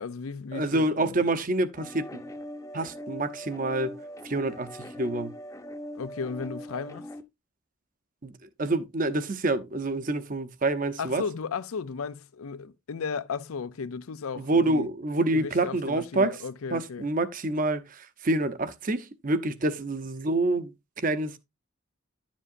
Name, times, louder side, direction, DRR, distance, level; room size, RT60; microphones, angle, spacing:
voice 1, 0.0-1.2 5.9-7.1 11.0-14.9 15.3-17.1, left 5 dB, 90° left, 0.5 m, -35 dB
voice 2, 0.5-2.1 2.7-3.9 4.2-5.3 8.2-11.2 14.4-16.4 16.7-21.4, right 2 dB, 40° right, 0.7 m, -27 dB
sound 1, 1.8-7.2, equal, 15° left, 0.7 m, -41 dB
11.0 x 7.3 x 2.6 m
head